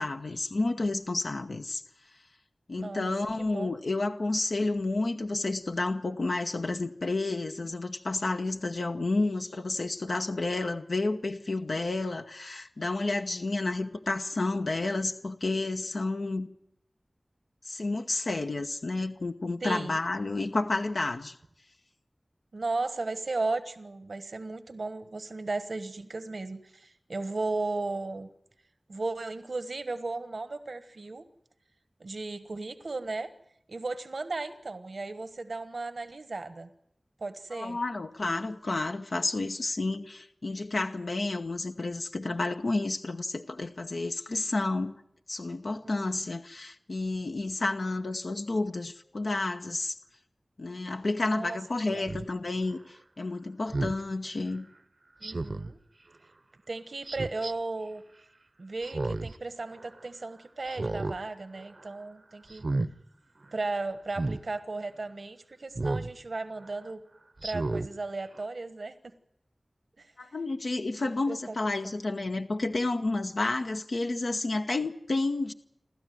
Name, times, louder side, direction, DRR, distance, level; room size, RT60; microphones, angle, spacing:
voice 1, 0.0-1.8 2.7-16.5 17.6-21.4 37.5-44.9 45.3-50.0 50.6-54.7 70.2-75.5, left 2 dB, 90° left, 1.0 m, -30 dB
voice 2, 2.7-3.1 3.4-3.7 19.6-19.9 22.5-28.3 28.9-31.2 32.0-33.3 33.7-36.7 37.2-37.8 45.8-46.2 51.3-51.6 51.9-52.1 55.2-55.8 56.7-58.0 58.6-62.6 63.5-67.0 67.4-68.9 70.0-70.1 71.3-71.9, right 3 dB, 90° right, 1.3 m, -35 dB
Speech synthesizer, 52.1-52.3 53.7-54.0 55.2-55.7 57.1-57.5 58.8-59.4 59.7-59.8 60.7-61.2 61.6-61.9 62.5-62.9 64.1-64.4 65.8-66.1 66.6-66.7 67.4-67.9 68.3-68.4, right 2 dB, 70° right, 0.8 m, -32 dB
29.0 x 12.5 x 9.3 m
wide cardioid pair, 45°, 0 cm